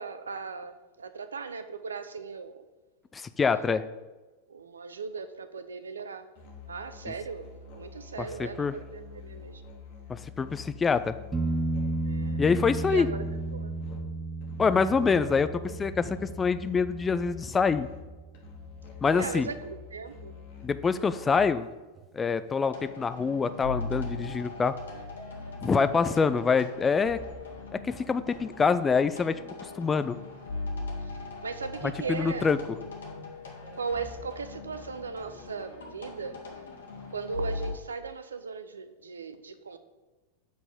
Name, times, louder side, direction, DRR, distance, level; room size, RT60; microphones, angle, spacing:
voice 1, 0.0-2.6 3.5-4.0 4.5-6.3 6.7-9.6 12.0-12.4 12.8-13.7 19.1-20.3 31.0-32.5 33.7-36.4 37.1-39.8, right 5 dB, 70° right, 11 dB, 0.6 m, -38 dB
voice 2, 3.1-3.8 8.2-8.7 10.4-11.1 12.4-13.1 14.6-15.5 15.8-17.9 19.0-19.5 20.6-21.7 22.1-24.7 25.6-27.2 27.7-29.4 29.8-30.2 32.1-32.6, left 5 dB, 15° left, 12 dB, 0.4 m, -25 dB
Musical instrument, 6.3-21.7, left 6 dB, 50° left, 1.8 m, -47 dB
sound 1, 11.3-18.9 22.0-22.1, right 2 dB, 15° right, 1.0 m, -34 dB
sound 2, 22.6-37.7, left 3 dB, 70° left, 1.8 m, -40 dB
7.7 x 4.1 x 6.7 m, 1.2 s
figure-of-eight pair, 90°, 0 cm